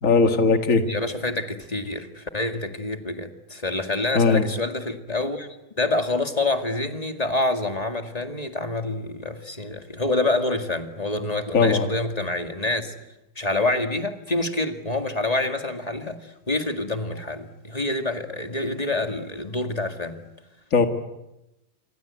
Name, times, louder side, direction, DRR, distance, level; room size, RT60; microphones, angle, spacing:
voice 1, 0.0-0.9 4.1-4.4 11.5-11.9 20.7-20.9, left 4 dB, 40° left, 6 dB, 2.2 m, -18 dB
voice 2, 0.9-5.5 5.8-12.9 13.4-20.2, left 2 dB, 20° left, 6 dB, 2.0 m, -27 dB
28.0 x 24.5 x 8.3 m, 0.92 s
omnidirectional pair, 2.2 m